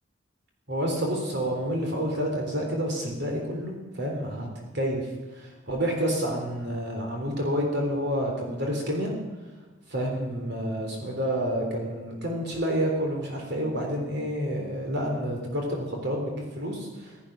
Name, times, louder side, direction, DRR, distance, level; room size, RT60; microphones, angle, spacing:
voice 1, 0.7-4.5 4.7-5.1 5.4-9.1 9.9-17.1, equal, 60° right, 1 dB, 3.6 m, -29 dB
15.5 x 13.5 x 6.1 m, 1.3 s
head